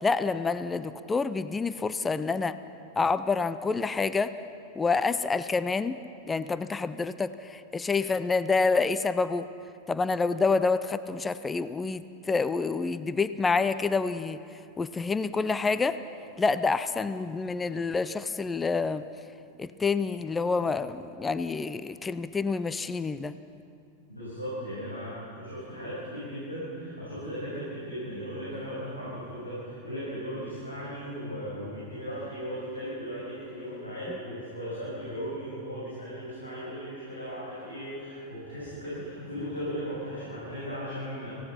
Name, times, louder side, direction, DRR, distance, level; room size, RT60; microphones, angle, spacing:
voice 1, 0.0-2.6 3.0-4.3 4.8-6.0 6.3-9.5 9.9-14.4 14.8-16.0 16.4-19.0 19.6-23.4, left 4 dB, 15° left, 14 dB, 0.5 m, -28 dB
voice 2, 24.2-41.3, equal, 85° left, -9 dB, 7.1 m, -37 dB
25.5 x 17.0 x 5.9 m, 2.5 s
figure-of-eight pair, 90°, 0 cm